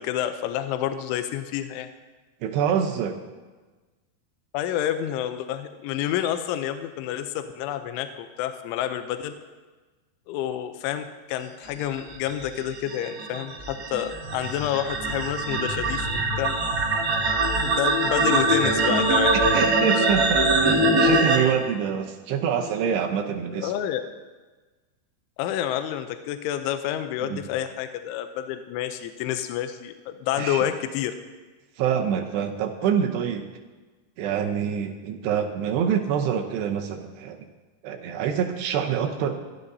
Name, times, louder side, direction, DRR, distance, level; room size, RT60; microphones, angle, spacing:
voice 1, 0.0-1.9 4.5-9.4 10.3-16.5 17.6-19.4 20.0-20.1 23.5-24.0 25.4-31.2, left 11 dB, 85° left, 8 dB, 3.1 m, -29 dB
voice 2, 2.4-3.2 19.3-23.7 27.3-27.4 30.4-30.6 31.8-33.5 34.2-37.4 37.8-39.4, right 8 dB, 75° right, 3 dB, 2.6 m, -26 dB
sound 1, 12.1-21.4, right 2 dB, 40° right, 1.3 m, -23 dB
27.0 x 13.0 x 2.7 m, 1.3 s
omnidirectional pair, 5.6 m